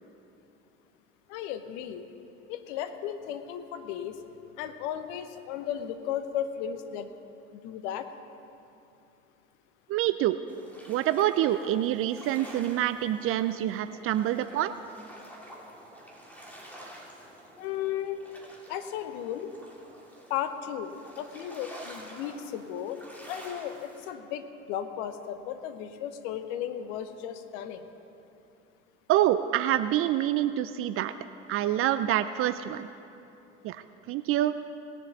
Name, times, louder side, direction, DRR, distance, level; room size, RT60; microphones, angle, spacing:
voice 1, 1.3-2.0 2.5-4.2 4.6-7.1 7.5-8.1 17.6-18.2 18.7-19.6 20.3-23.0 23.3-27.9, left 10 dB, 60° left, 9 dB, 0.9 m, -35 dB
voice 2, 9.9-10.4 10.9-14.7 29.1-31.1 31.5-32.9 33.6-34.5, right 12 dB, 35° right, 12 dB, 0.4 m, -26 dB
sound 1, 10.5-24.1, right 1 dB, 5° left, 2.4 m, -49 dB
19.0 x 7.2 x 4.1 m, 2.8 s
hypercardioid pair, 70°, 39 cm